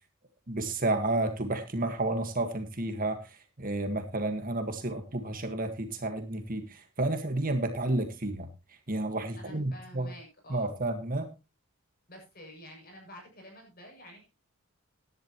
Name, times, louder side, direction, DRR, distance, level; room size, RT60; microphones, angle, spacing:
voice 1, 0.5-8.5 8.9-10.1 10.5-11.3, right 2 dB, 40° right, 7 dB, 1.7 m, -31 dB
voice 2, 9.4-10.7 12.1-14.3, equal, 45° left, 1 dB, 6.9 m, -49 dB
16.0 x 11.0 x 3.0 m, 0.27 s
head